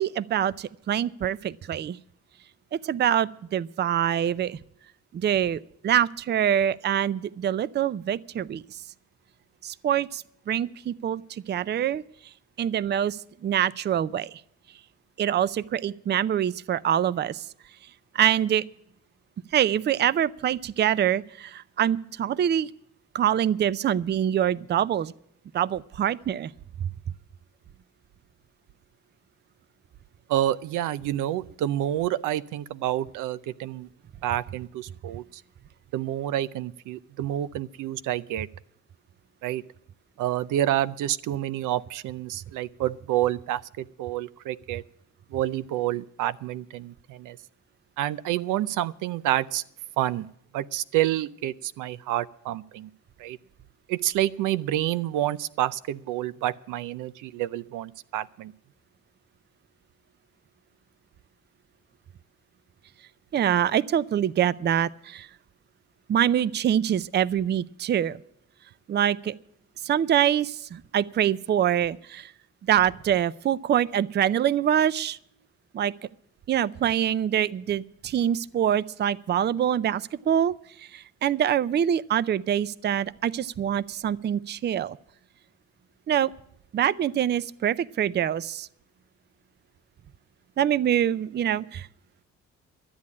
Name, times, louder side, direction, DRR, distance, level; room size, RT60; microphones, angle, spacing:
voice 1, 0.0-2.0 2.7-4.6 5.1-8.6 9.6-12.0 12.6-14.4 15.2-17.4 18.1-18.6 19.5-22.7 23.1-25.1 25.5-26.5 26.8-26.9 63.3-65.3 66.1-68.2 68.9-69.3 69.8-72.3 72.7-75.2 75.7-75.9 76.5-85.0 86.1-86.3 86.7-88.7 90.6-91.9, right 10 dB, 35° right, 19 dB, 0.4 m, -25 dB
voice 2, 30.3-33.9 34.2-35.2 35.9-38.5 39.4-39.6 40.2-44.8 45.3-47.4 48.0-49.6 50.0-50.3 50.5-52.9 53.2-53.4 53.9-58.5, right 13 dB, 90° right, 16 dB, 0.6 m, -28 dB
12.5 x 8.3 x 8.5 m, 0.70 s
cardioid pair, 90°, 30 cm